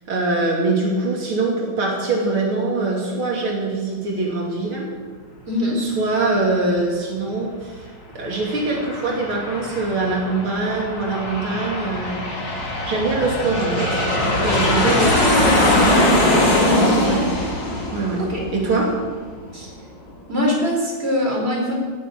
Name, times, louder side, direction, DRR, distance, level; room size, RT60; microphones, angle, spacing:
voice 1, 0.1-4.9 5.8-16.0 17.0-17.2 17.9-18.2 18.5-19.0, right 3 dB, 90° right, -1 dB, 3.6 m, -23 dB
voice 2, 5.5-5.8 14.8-15.1 16.7-17.0 18.2-18.4 19.5-19.7 20.3-21.7, left 1 dB, 30° right, -2 dB, 4.7 m, -22 dB
Aircraft, 8.2-19.4, left 1 dB, 65° left, 3.9 m, -21 dB
18.0 x 7.8 x 9.4 m, 1.5 s
omnidirectional pair, 2.2 m